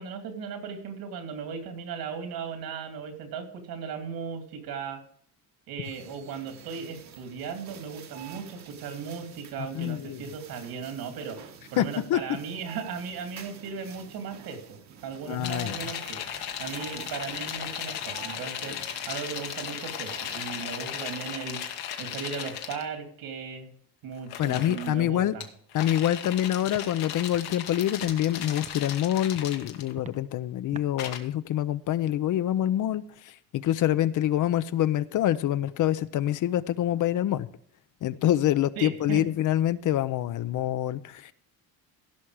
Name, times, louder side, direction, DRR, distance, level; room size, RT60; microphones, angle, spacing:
voice 1, 0.0-5.0 5.7-21.7 22.0-23.7 24.0-25.5 38.8-39.2, right 6 dB, 75° right, 2.8 m, -37 dB
sound 1, 5.8-21.4, right 8 dB, 45° right, 1.2 m, -49 dB
voice 2, 9.6-10.2 11.8-12.2 15.3-15.8 24.4-25.3 25.7-37.5 38.0-41.3, left 12 dB, 55° left, 0.6 m, -26 dB
sound 2, 15.4-22.8 24.2-24.9 25.4-30.1 31.0-31.2, left 9 dB, 80° left, 1.6 m, -36 dB
Walk footsteps, 26.0-26.2 26.7-26.9 27.3-27.5 28.0-28.2 28.6-28.9 29.3-29.5 29.9-30.2 30.7-30.9, right 5 dB, 20° right, 0.5 m, -45 dB
16.0 x 5.9 x 4.9 m
cardioid pair, 130°, 38 cm